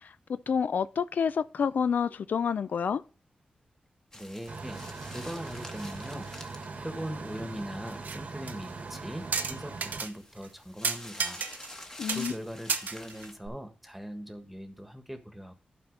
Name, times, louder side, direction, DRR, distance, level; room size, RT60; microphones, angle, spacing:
voice 1, 0.0-3.0 12.0-12.3, left 6 dB, 75° left, 0.3 m, -29 dB
sound 1, 4.1-13.4, left 1 dB, 20° left, 1.4 m, -49 dB
voice 2, 4.1-4.8 5.1-6.3 6.8-11.4 12.1-15.6, equal, 5° right, 1.4 m, -40 dB
sound 2, 4.5-10.0, right 3 dB, 65° right, 1.1 m, -41 dB
sound 3, 7.9-8.2 8.5-8.6 9.3-10.1 10.4-10.5 10.8-11.8 12.1-12.4 12.7-13.5, right 5 dB, 85° right, 0.8 m, -32 dB
11.5 x 4.3 x 4.0 m
cardioid pair, 70°, 3 cm